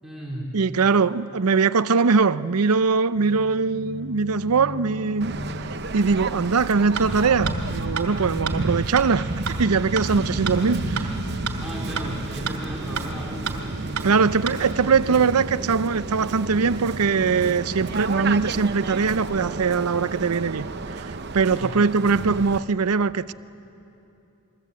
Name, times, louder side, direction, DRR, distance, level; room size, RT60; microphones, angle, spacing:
voice 1, 0.0-0.5 11.6-13.7 14.1-14.3 21.5-21.8, equal, ahead, 4.0 m, -35 dB
voice 2, 0.5-5.4 5.9-9.3 9.6-11.1 14.0-20.7 20.9-23.3, right 5 dB, 90° right, 0.6 m, -21 dB
sound 1, 3.2-12.3, left 1 dB, 65° left, 1.0 m, -38 dB
Waves surf, 5.2-22.6, right 3 dB, 50° right, 0.8 m, -31 dB
sound 2, 6.9-7.0 7.4-7.5 8.0-8.1 8.5-8.6 9.0-9.1 9.5-9.6 9.9-10.0 10.4-10.5 11.0-11.1 11.5-11.6 12.0-12.1 12.4-12.5 12.9-13.1 13.4-13.5 14.0-14.1 14.5-14.6, right 6 dB, 70° right, 2.7 m, -28 dB
28.5 x 22.0 x 8.4 m
head